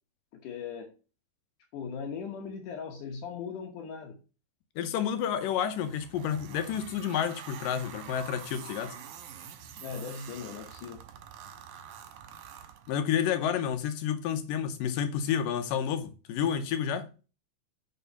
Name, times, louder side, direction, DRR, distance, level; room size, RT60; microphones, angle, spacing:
voice 1, 0.4-0.9 1.7-4.2 9.8-11.0, left 6 dB, 75° left, 2.6 m, -39 dB
voice 2, 4.8-9.0 12.9-17.1, left 8 dB, 90° left, 2.6 m, -30 dB
sound 1, 5.7-13.3, right 8 dB, 75° right, 2.2 m, -46 dB
6.9 x 5.6 x 5.5 m
omnidirectional pair, 3.8 m